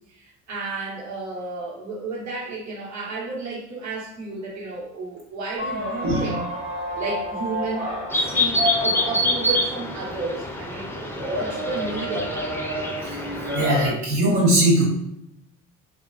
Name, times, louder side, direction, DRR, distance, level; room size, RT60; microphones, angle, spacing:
voice 1, 0.1-6.4 6.9-7.9 8.2-12.5, right 3 dB, 50° right, -5 dB, 1.1 m, -32 dB
sound 1, 5.6-13.9, equal, 25° right, 1.1 m, -31 dB
sound 2, 8.1-13.9, left 1 dB, 5° left, 0.3 m, -26 dB
voice 2, 13.5-14.8, right 1 dB, 80° right, -5 dB, 0.9 m, -20 dB
2.3 x 2.3 x 2.3 m, 0.79 s
hypercardioid pair, 65°, 37 cm